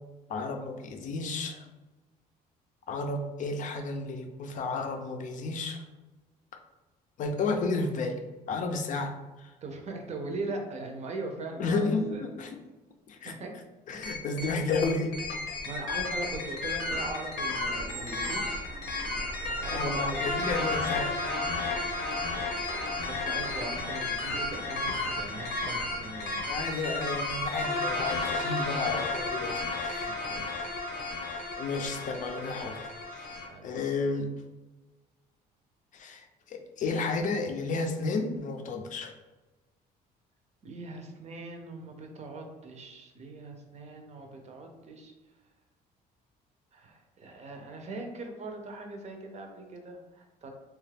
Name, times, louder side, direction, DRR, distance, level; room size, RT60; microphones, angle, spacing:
voice 1, 0.3-1.7 2.9-5.8 7.2-8.2 8.5-9.1 9.4-9.5 11.6-12.6 13.1-13.3 13.9-15.1 19.7-21.2 26.5-30.2 31.6-33.3 33.6-34.3 35.9-39.1, left 3 dB, 50° left, 4 dB, 0.5 m, -32 dB
voice 2, 9.6-12.2 13.2-13.5 15.7-18.6 19.5-20.2 22.6-26.4 30.0-30.5 33.3-33.7 40.6-45.1 46.7-50.5, right 2 dB, 40° right, 3 dB, 0.6 m, -40 dB
sound 1, 14.0-33.5, left 2 dB, 90° left, 0.8 m, -33 dB
sound 2, 17.5-23.8, right 2 dB, 85° right, 0.6 m, -44 dB
sound 3, 27.1-28.8, left 1 dB, ahead, 0.8 m, -51 dB
2.9 x 2.3 x 3.3 m, 1.1 s
cardioid pair, 110°, 17 cm